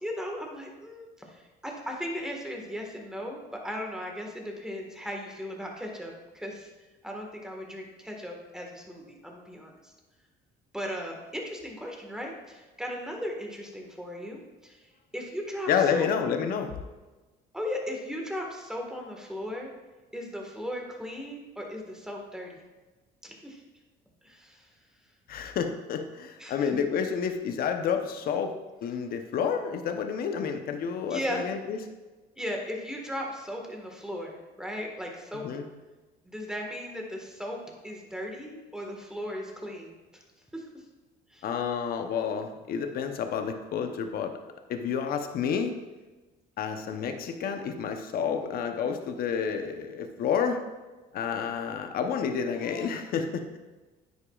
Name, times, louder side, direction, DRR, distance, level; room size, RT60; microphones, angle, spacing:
voice 1, 0.0-6.7 7.0-9.9 10.7-14.8 15.1-16.1 16.4-16.5 17.5-19.7 20.1-22.6 23.2-23.6 24.2-24.7 26.4-26.7 31.1-31.4 32.4-35.5 36.2-39.9 40.5-40.8 41.3-41.4, equal, 5° right, 0 dB, 1.6 m, -37 dB
voice 2, 15.7-16.8 25.3-31.8 35.3-35.7 41.4-44.4 44.7-45.7 46.6-50.6 51.1-53.6, left 7 dB, 60° left, 6 dB, 0.8 m, -30 dB
10.0 x 8.0 x 2.4 m, 1.2 s
cardioid pair, 110°, 17 cm